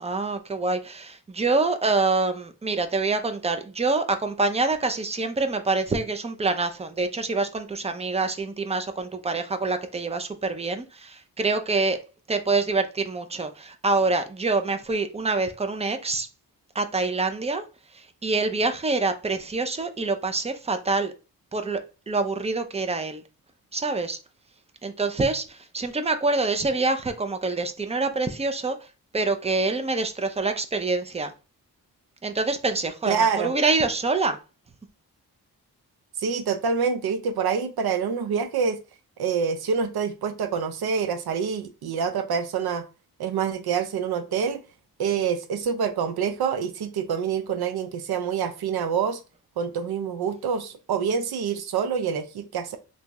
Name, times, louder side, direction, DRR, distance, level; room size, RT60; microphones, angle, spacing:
voice 1, 0.0-12.0 12.3-16.3 16.7-17.6 17.9-21.1 21.5-23.2 23.7-24.2 24.8-28.8 29.1-31.3 32.2-34.4, right 3 dB, 20° right, 0.4 m, -26 dB
voice 2, 33.1-33.5 36.2-38.8 39.2-42.8 43.2-44.6 45.0-49.2 49.6-52.8, right 6 dB, 85° right, 0.5 m, -26 dB
3.4 x 2.7 x 2.9 m
wide cardioid pair, 125°, 37 cm